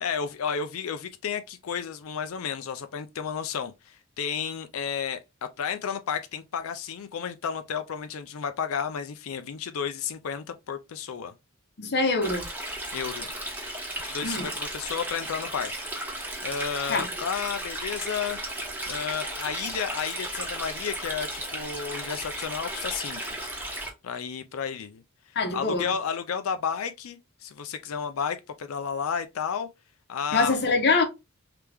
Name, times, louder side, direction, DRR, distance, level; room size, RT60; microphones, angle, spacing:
voice 1, 0.0-11.3 12.9-13.3 14.0-15.7 16.4-18.4 18.9-23.2 24.0-25.0 25.5-29.7 30.1-30.6, left 7 dB, 75° left, 0.4 m, -32 dB
voice 2, 11.8-12.5 14.2-14.5 16.9-17.1 25.3-25.9 30.3-31.0, left 3 dB, 50° left, 0.8 m, -24 dB
Stream, 12.2-23.9, right 1 dB, 10° right, 0.9 m, -35 dB
3.4 x 2.9 x 3.3 m
head